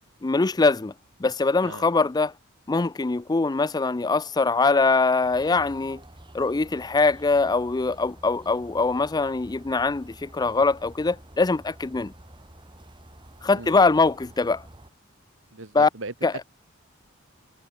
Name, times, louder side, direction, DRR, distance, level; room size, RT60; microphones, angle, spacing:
voice 1, 0.2-0.9 1.2-2.3 2.7-6.0 6.3-12.1 13.4-14.6 15.7-15.9 16.2-16.3, left 3 dB, 20° left, 0.4 m, -22 dB
sound 1, 5.2-14.9, right 1 dB, 25° right, 3.4 m, -49 dB
voice 2, 15.5-16.1, right 3 dB, 70° right, 1.9 m, -38 dB
head